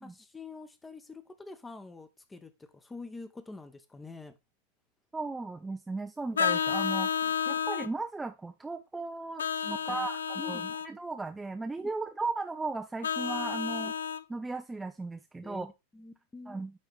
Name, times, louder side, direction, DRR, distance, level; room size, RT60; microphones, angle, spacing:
voice 1, 0.0-4.3 7.2-7.3 9.6-10.1 10.4-10.6 11.8-11.9 13.8-13.9 15.4-16.6, left 3 dB, 10° left, 11 dB, 0.9 m, -46 dB
voice 2, 5.1-7.1 7.5-9.4 9.7-13.9 14.3-15.7 16.5-16.7, right 3 dB, 10° right, 6 dB, 0.6 m, -36 dB
Vehicle horn car horn honking, 6.4-7.9 9.4-10.9 13.0-14.2, left 7 dB, 70° left, 0.4 m, -31 dB
9.7 x 3.8 x 3.4 m, 0.23 s
figure-of-eight pair, 90°, 0 cm